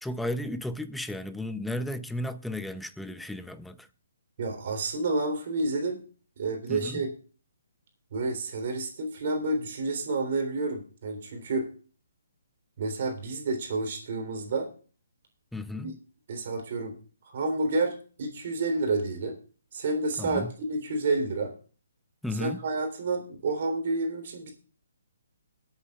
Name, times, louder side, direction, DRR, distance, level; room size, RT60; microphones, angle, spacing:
voice 1, 0.0-3.9 6.7-7.0 15.5-16.0 20.2-20.5 22.2-22.6, left 1 dB, ahead, 0.6 m, -34 dB
voice 2, 4.4-6.0 6.4-7.1 8.1-11.7 12.8-14.7 15.8-15.9 16.3-16.9 17.3-19.4 19.7-21.5 22.4-24.5, right 3 dB, 55° right, 3.5 m, -29 dB
22.5 x 8.4 x 2.4 m
hypercardioid pair, 150°, 0 cm